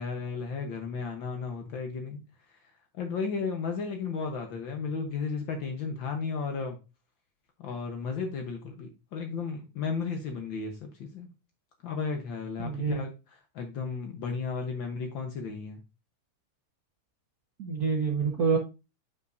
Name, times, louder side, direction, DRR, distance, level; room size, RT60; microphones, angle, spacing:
voice 1, 0.0-2.2 2.5-2.6 2.9-6.8 7.6-11.3 11.8-13.1 13.5-15.8, left 5 dB, 85° left, 4 dB, 1.0 m, -34 dB
voice 2, 12.6-13.0 17.6-18.6, right 6 dB, 75° right, -1 dB, 0.8 m, -27 dB
9.1 x 5.6 x 2.6 m, 0.28 s
omnidirectional pair, 3.8 m